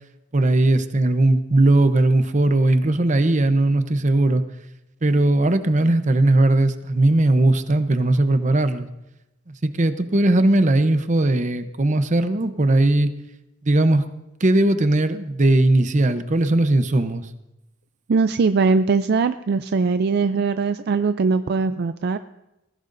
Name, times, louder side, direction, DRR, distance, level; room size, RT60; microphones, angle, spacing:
voice 1, 0.3-4.4 5.0-8.9 9.5-13.1 13.6-14.0 14.4-17.3, right 2 dB, 40° right, 10 dB, 0.7 m, -18 dB
voice 2, 18.1-22.2, right 4 dB, 60° right, 10 dB, 0.4 m, -21 dB
19.5 x 16.0 x 2.6 m, 0.93 s
head